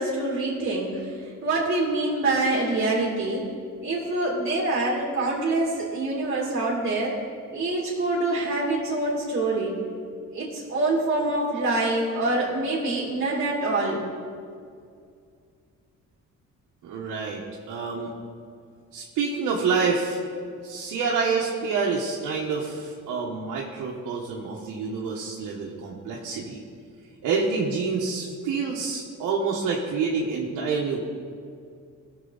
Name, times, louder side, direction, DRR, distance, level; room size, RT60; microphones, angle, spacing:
voice 1, 0.0-3.5 3.8-7.1 7.5-9.8 10.3-14.0, right 2 dB, 40° right, -5 dB, 2.5 m, -25 dB
voice 2, 16.8-18.1 18.9-20.2 20.6-26.6 27.2-31.0, right 4 dB, 85° right, -3 dB, 1.3 m, -27 dB
16.0 x 6.8 x 4.0 m, 2.3 s
cardioid pair, 90°, 30 cm